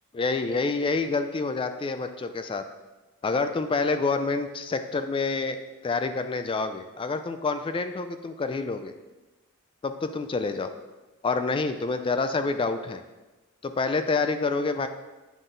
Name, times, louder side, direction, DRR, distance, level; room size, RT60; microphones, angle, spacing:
voice 1, 0.1-2.6 3.2-8.9 9.8-10.7 11.2-13.0 13.6-14.9, left 4 dB, 25° left, 9 dB, 0.3 m, -27 dB
9.2 x 4.0 x 3.8 m, 1.1 s
head